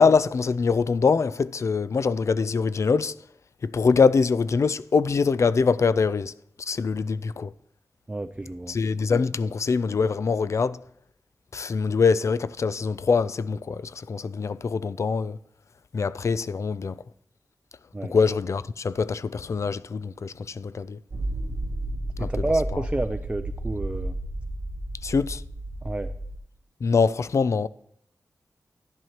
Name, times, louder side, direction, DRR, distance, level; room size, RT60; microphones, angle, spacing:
voice 1, 0.0-3.2 3.6-6.3 6.6-7.5 8.7-10.8 11.5-15.4 15.9-17.0 18.0-21.0 22.2-22.3 22.7-22.8 25.0-25.4 26.8-27.7, left 5 dB, 55° left, 0.3 m, -23 dB
voice 2, 8.1-8.8 17.9-18.1 22.2-24.2 25.8-26.1, right 2 dB, 20° right, 0.4 m, -29 dB
sound 1, 21.1-26.4, right 1 dB, 50° right, 1.0 m, -32 dB
12.5 x 11.0 x 2.9 m
wide cardioid pair, 90°, 6 cm